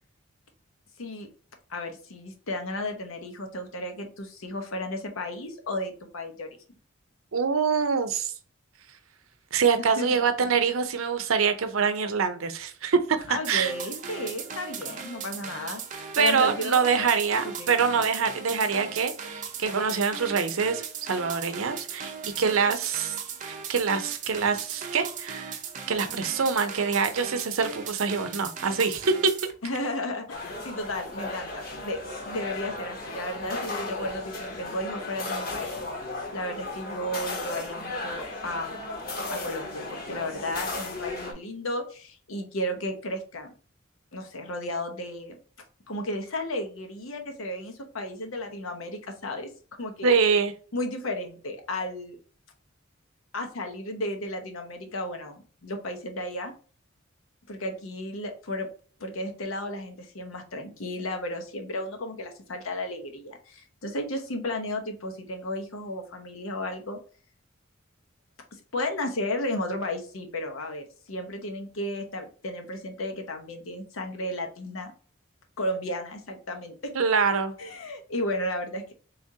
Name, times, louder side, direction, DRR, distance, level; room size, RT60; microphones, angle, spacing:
voice 1, 1.0-1.3 1.7-6.5 9.8-10.2 13.3-16.8 17.4-17.7 29.6-32.0 32.2-35.8 36.3-38.8 39.3-43.5 44.1-45.4 45.9-49.5 49.8-50.1 50.7-52.2 53.3-56.5 57.5-58.7 59.0-67.0 68.5-74.9 75.6-76.9 77.6-78.9, left 1 dB, 85° left, 0.9 m, -33 dB
voice 2, 7.3-8.3 9.5-13.7 16.2-20.8 21.1-23.2 23.5-25.6 25.9-29.3 50.0-50.5 76.9-77.5, right 5 dB, 85° right, 0.6 m, -25 dB
sound 1, 13.4-29.5, right 6 dB, 35° right, 0.5 m, -38 dB
sound 2, 30.3-41.3, left 2 dB, 45° left, 1.0 m, -35 dB
3.6 x 3.4 x 2.7 m
head